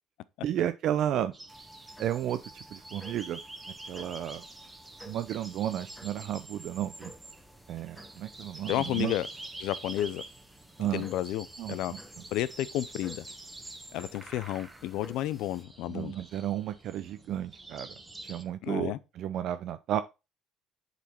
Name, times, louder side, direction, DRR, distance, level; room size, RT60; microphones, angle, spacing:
voice 1, 0.4-1.3 2.0-3.4 3.9-4.4 5.1-7.1 7.7-9.1 10.8-11.1 11.6-12.0 15.9-17.9 18.2-20.0, right 11 dB, 65° right, 0.4 m, -32 dB
sound 1, 1.3-18.4, right 2 dB, 15° right, 1.3 m, -47 dB
sound 2, 1.5-15.6, equal, 5° left, 1.1 m, -54 dB
voice 2, 8.7-9.3 9.6-10.2 10.9-11.9 12.3-13.2 13.9-16.2 18.6-19.0, left 13 dB, 75° left, 0.5 m, -31 dB
7.1 x 4.1 x 4.4 m
supercardioid pair, 90°, 0 cm